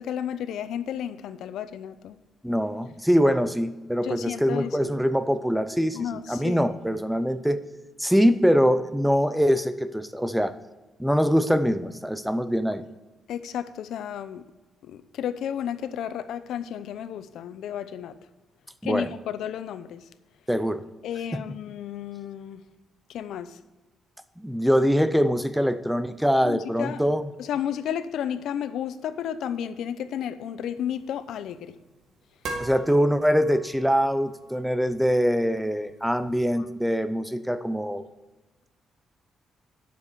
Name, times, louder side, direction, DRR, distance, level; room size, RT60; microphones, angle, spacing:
voice 1, 0.0-2.2 4.0-4.9 5.9-6.7 13.3-14.4 14.8-18.2 18.8-20.1 21.0-22.6 23.1-23.6 26.4-27.0 27.4-31.8 36.6-36.7, left 9 dB, 75° left, 0.6 m, -32 dB
voice 2, 2.4-6.0 6.3-7.6 8.0-10.5 11.0-12.8 18.8-19.1 20.5-20.8 21.3-21.4 24.4-27.3 32.6-38.1, equal, ahead, 0.5 m, -23 dB
sound 1, 30.7-36.5, right 2 dB, 60° right, 1.7 m, -43 dB
10.0 x 7.2 x 4.6 m
cardioid pair, 170°, 0 cm